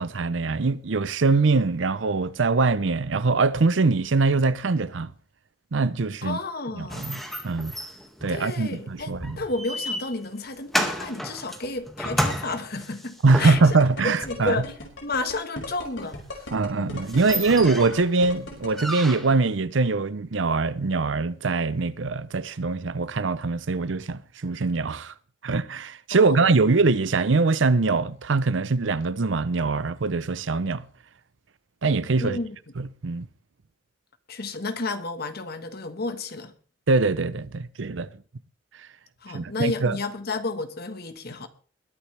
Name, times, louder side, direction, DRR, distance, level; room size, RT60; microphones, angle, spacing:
voice 1, 0.0-5.1 5.7-6.4 6.8-7.7 8.2-9.4 13.2-14.6 16.5-25.1 25.4-30.9 31.8-32.4 32.8-33.3 36.9-38.1 39.3-40.0, right 3 dB, 75° right, 0.7 m, -23 dB
voice 2, 6.2-7.1 8.3-13.6 14.0-14.7 15.0-17.0 17.4-17.5 26.1-26.5 32.2-32.6 34.3-36.5 39.2-41.5, left 2 dB, 55° left, 1.5 m, -32 dB
sound 1, 6.9-13.9 16.3-16.4 16.8-16.9 17.0-18.1 18.7-19.5, equal, ahead, 1.9 m, -32 dB
sound 2, 13.5-18.7, left 2 dB, 75° left, 5.1 m, -37 dB
21.5 x 11.0 x 3.4 m
head